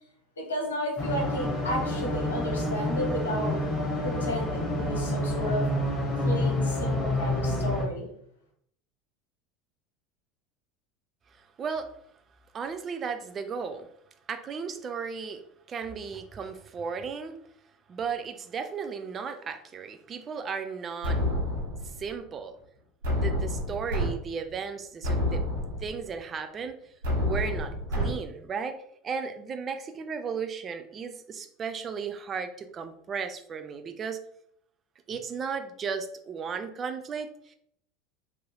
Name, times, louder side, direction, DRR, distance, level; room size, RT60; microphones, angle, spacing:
voice 1, 0.4-3.6 4.0-5.7 6.2-8.1, equal, 85° left, 1 dB, 0.8 m, -33 dB
sound 1, 1.0-7.8, left 1 dB, 30° left, 0.9 m, -28 dB
voice 2, 11.3-11.9 12.5-13.9 14.3-17.4 17.9-21.2 22.0-22.6 23.1-25.4 25.8-26.9 27.2-34.2 35.1-37.5, right 6 dB, 35° right, 8 dB, 0.3 m, -35 dB
sound 2, 21.0-22.0 23.0-24.1 24.5-24.6 25.0-26.0 27.0-28.1, left 1 dB, 75° right, 1.3 m, -28 dB
3.1 x 2.7 x 2.2 m, 0.69 s
figure-of-eight pair, 75°, 0 cm